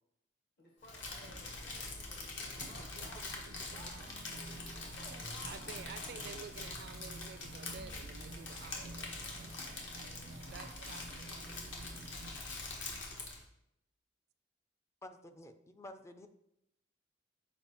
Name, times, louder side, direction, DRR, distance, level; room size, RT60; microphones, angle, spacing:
voice 1, 0.6-6.0, left 1 dB, 55° left, 0 dB, 1.1 m, -58 dB
Crumpling crinkling, 0.8-13.4, left 3 dB, 75° left, 1.3 m, -44 dB
voice 2, 2.6-3.9 5.4-9.1 10.4-11.5, right 6 dB, 60° right, 12 dB, 0.4 m, -51 dB
sound 1, 3.7-12.3, right 2 dB, 85° right, 0.7 m, -51 dB
voice 3, 15.0-16.3, left 1 dB, 15° left, 8 dB, 0.3 m, -51 dB
7.0 x 4.7 x 3.0 m, 0.80 s
head